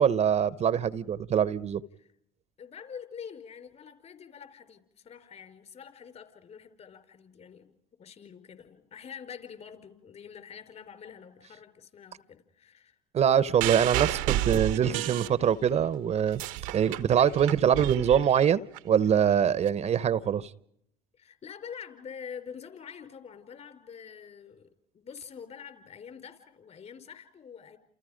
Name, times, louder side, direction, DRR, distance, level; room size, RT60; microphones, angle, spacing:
voice 1, 0.0-1.8 13.1-16.4 16.7-20.5, right 8 dB, 45° right, 0.9 m, -24 dB
voice 2, 2.6-7.7 8.0-13.0 21.1-24.7 24.9-27.8, left 7 dB, 45° left, 4.9 m, -46 dB
sound 1, 13.6-15.8 16.2-18.8 19.7-19.8, right 15 dB, 85° right, 1.1 m, -32 dB
30.0 x 28.5 x 5.2 m
hypercardioid pair, 75°, 16 cm